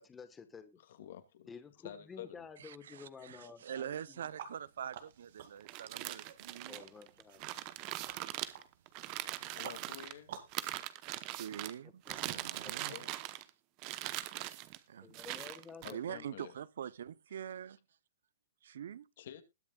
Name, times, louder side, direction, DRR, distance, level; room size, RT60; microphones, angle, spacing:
voice 1, 0.0-0.8 1.5-4.3 6.7-7.6 11.8-12.7 15.0-16.3, left 5 dB, 10° left, 1.4 m, -52 dB
voice 2, 0.9-1.5 1.8-2.5 9.4-10.3 12.9-13.1 15.8-16.5 19.2-19.4, left 11 dB, 55° left, 2.3 m, -49 dB
voice 3, 2.6-6.8 11.4-13.0 14.9-15.2 15.8-17.8 18.6-19.1, right 9 dB, 70° right, 0.7 m, -44 dB
sound 1, 4.2-10.6, right 9 dB, 55° right, 2.1 m, -53 dB
sound 2, 5.6-10.1 10.5-11.7 12.1-13.5 13.8-14.8 15.1-15.9, right 16 dB, 30° right, 0.9 m, -41 dB
20.5 x 7.0 x 2.4 m
hypercardioid pair, 165°, 0 cm